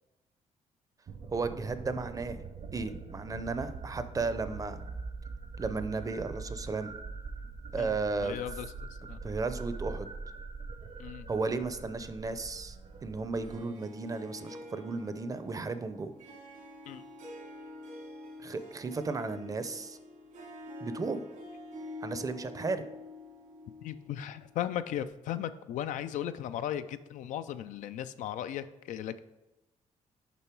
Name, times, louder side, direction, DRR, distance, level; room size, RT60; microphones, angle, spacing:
sound 1, 1.1-13.6, right 4 dB, 55° right, 0.8 m, -43 dB
voice 1, 1.3-2.4 2.7-4.8 5.6-6.9 7.7-8.4 9.2-10.1 11.3-12.8 13.0-16.1 18.4-20.0 20.8-21.3 22.0-22.8, right 3 dB, 30° right, 11 dB, 0.5 m, -34 dB
voice 2, 7.8-8.7 9.0-9.2 11.0-11.3 16.9-17.0 23.8-29.2, left 10 dB, 85° left, 12 dB, 0.4 m, -37 dB
Harp, 13.4-24.5, left 2 dB, 85° right, 2.4 m, -47 dB
6.9 x 5.4 x 4.5 m, 0.99 s
cardioid pair, 100°, 13 cm